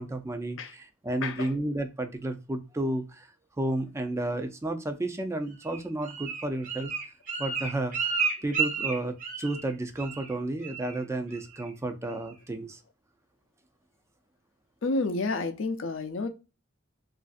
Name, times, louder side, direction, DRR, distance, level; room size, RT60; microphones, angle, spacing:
voice 1, 0.0-6.9 7.4-8.1 8.4-12.8, right 1 dB, 15° right, 0.4 m, -32 dB
voice 2, 1.2-1.5 14.8-16.3, left 3 dB, 80° left, 0.5 m, -30 dB
Bird, 5.6-9.7 10.0-10.3 10.6-11.0 11.3-11.7 12.1-12.2, right 5 dB, 40° right, 0.9 m, -32 dB
3.2 x 2.5 x 2.4 m
head